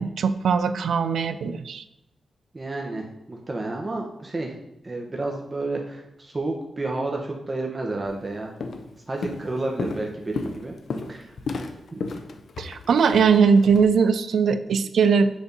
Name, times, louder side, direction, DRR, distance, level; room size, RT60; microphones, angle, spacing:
voice 1, 0.0-1.8 12.6-15.3, right 6 dB, 80° right, 12 dB, 0.3 m, -20 dB
voice 2, 2.5-4.5 4.8-8.5 9.1-10.8 11.1-11.4 11.9-12.1, right 2 dB, 30° right, 0 dB, 0.9 m, -30 dB
Walk footsteps, 8.1-8.3 8.6-8.9 9.2-13.8, left 3 dB, 75° left, 0.5 m, -33 dB
6.9 x 2.7 x 5.2 m, 0.86 s
cardioid pair, 60°, 0 cm